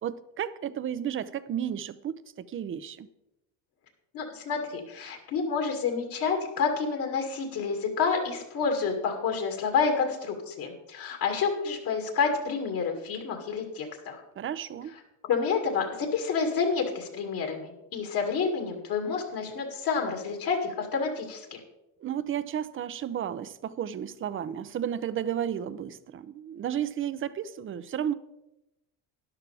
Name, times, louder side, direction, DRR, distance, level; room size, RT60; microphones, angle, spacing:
voice 1, 0.0-3.1 14.4-14.9 22.0-28.1, right 9 dB, 30° right, 0.5 m, -33 dB
voice 2, 4.1-14.2 15.3-21.6, left 5 dB, 60° left, 2.3 m, -29 dB
13.0 x 10.5 x 3.4 m
cardioid pair, 125°, 39 cm